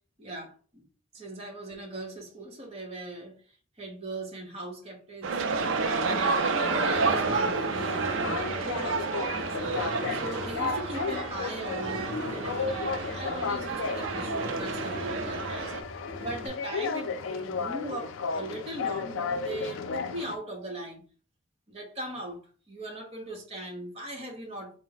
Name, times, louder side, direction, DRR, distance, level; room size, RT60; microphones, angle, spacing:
voice 1, 0.2-0.8 1.1-3.4 3.8-5.4 6.4-9.8 10.1-15.7 16.2-21.0 21.7-24.8, right 1 dB, 30° right, 1.0 m, -39 dB
sound 1, 5.2-15.8, right 4 dB, 75° right, 0.4 m, -30 dB
sound 2, 5.8-20.4, left 5 dB, 80° left, 0.4 m, -35 dB
sound 3, 6.6-16.5, left 2 dB, 15° right, 1.7 m, -40 dB
4.0 x 2.1 x 3.9 m
head